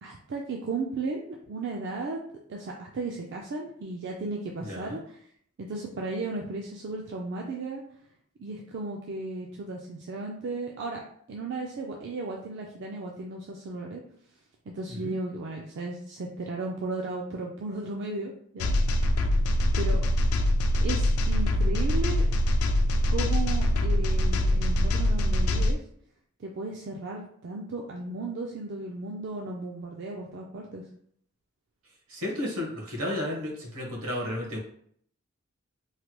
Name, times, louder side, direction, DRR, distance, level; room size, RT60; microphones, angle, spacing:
voice 1, 0.0-2.2 2.5-5.2 5.6-7.8 8.4-11.0 11.3-14.0 14.7-18.7 19.7-20.0 20.8-22.3 23.1-25.8 26.4-30.8, right 3 dB, 55° right, 0 dB, 0.4 m, -35 dB
voice 2, 4.6-5.0 14.9-15.1 32.1-34.6, left 1 dB, 80° right, -1 dB, 1.0 m, -33 dB
sound 1, 18.6-25.7, left 1 dB, 85° left, 0.3 m, -24 dB
3.2 x 2.1 x 2.9 m, 0.64 s
head